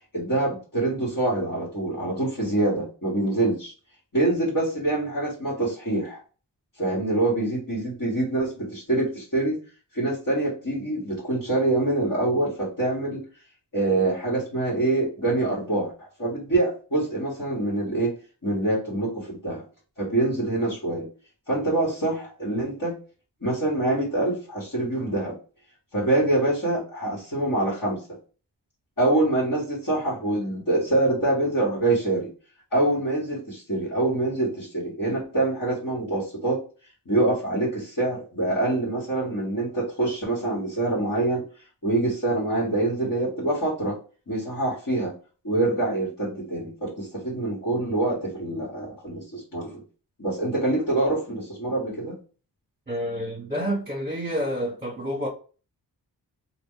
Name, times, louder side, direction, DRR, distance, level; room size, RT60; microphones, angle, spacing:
voice 1, 0.1-3.7 4.1-6.2 6.8-9.6 9.9-13.2 13.7-18.1 18.4-19.6 20.0-21.1 21.5-22.9 23.4-25.4 25.9-28.0 29.0-32.3 32.7-36.6 37.0-41.4 41.8-44.0 44.3-45.1 45.4-49.8 50.2-52.1, right 2 dB, 45° left, 1.6 m, -25 dB
voice 2, 52.9-55.3, equal, 20° right, 1.1 m, -29 dB
3.0 x 2.4 x 3.7 m
cardioid pair, 55°, 43 cm